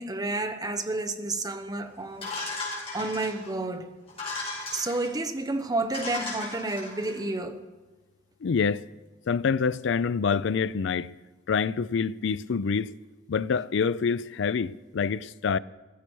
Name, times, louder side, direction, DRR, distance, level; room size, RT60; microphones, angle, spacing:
voice 1, 0.0-2.3 2.9-3.9 4.7-7.6, right 2 dB, 20° right, 0.9 m, -30 dB
sound 1, 2.2-3.5 4.1-5.1 5.6-5.7 5.9-7.1, left 3 dB, 30° left, 6.0 m, -36 dB
voice 2, 8.4-8.9 9.3-11.1 11.5-12.9 13.3-15.6, left 5 dB, 70° left, 0.4 m, -26 dB
15.5 x 15.0 x 4.7 m
head